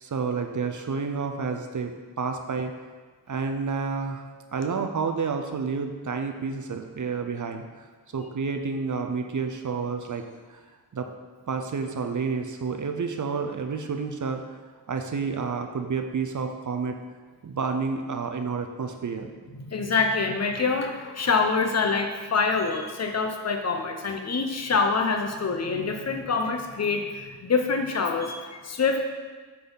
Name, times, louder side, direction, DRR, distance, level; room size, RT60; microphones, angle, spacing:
voice 1, 0.0-2.7 3.3-4.2 4.5-7.9 8.1-10.6 10.9-11.1 11.5-14.4 14.9-17.0 17.4-19.3, right 5 dB, 45° right, 5 dB, 0.7 m, -30 dB
voice 2, 19.5-29.2, left 4 dB, 35° left, 4 dB, 0.9 m, -26 dB
8.4 x 4.1 x 4.0 m, 1.4 s
cardioid pair, 65°, 43 cm